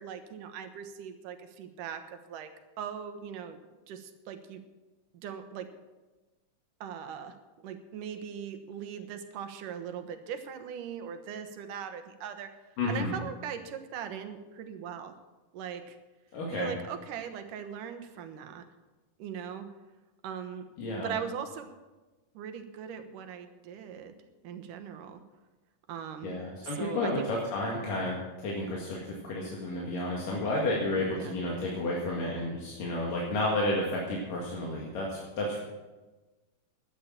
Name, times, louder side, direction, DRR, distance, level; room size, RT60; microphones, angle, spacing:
voice 1, 0.0-2.5 2.8-3.6 3.9-4.6 5.1-5.7 6.8-7.4 7.6-12.5 12.9-15.1 15.5-16.0 16.5-18.6 19.2-19.7 20.2-20.6 21.0-21.7 22.3-24.1 24.4-25.2 25.9-27.3 31.1-31.4, right 8 dB, 75° right, 8 dB, 2.6 m, -40 dB
voice 2, 12.8-13.1 16.3-16.7 20.8-21.1 26.2-29.0 29.2-35.6, left 1 dB, 80° left, -3 dB, 3.6 m, -31 dB
12.0 x 9.9 x 7.3 m, 1.2 s
omnidirectional pair, 3.8 m